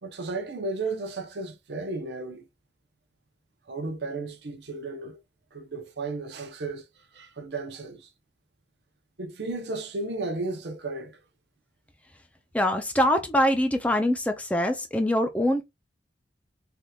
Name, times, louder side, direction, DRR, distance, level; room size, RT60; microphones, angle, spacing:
voice 1, 0.0-2.5 3.7-5.2 5.5-6.8 7.1-8.1 9.2-11.2, right 3 dB, 65° right, 0.7 m, -34 dB
voice 2, 12.5-15.6, left 1 dB, 10° left, 0.4 m, -24 dB
3.4 x 2.8 x 2.3 m
head